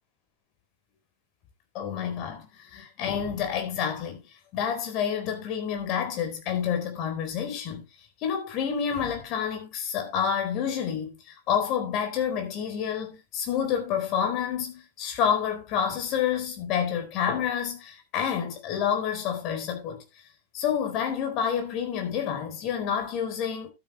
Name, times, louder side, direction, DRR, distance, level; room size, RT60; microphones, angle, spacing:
voice 1, 1.7-4.2 4.5-7.9 8.2-20.0 20.5-23.7, left 8 dB, 40° left, 4.2 m, -28 dB
12.5 x 9.4 x 3.2 m
figure-of-eight pair, 90°, 0 cm